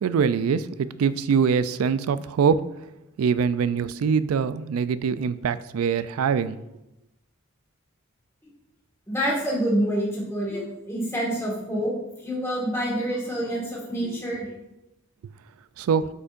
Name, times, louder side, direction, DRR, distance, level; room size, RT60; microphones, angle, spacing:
voice 1, 0.0-2.6 3.2-6.6 15.8-16.1, right 6 dB, 90° right, 15 dB, 0.3 m, -23 dB
voice 2, 9.1-11.9 12.2-14.5, equal, 10° left, -5 dB, 1.7 m, -27 dB
8.1 x 5.2 x 2.5 m, 0.90 s
head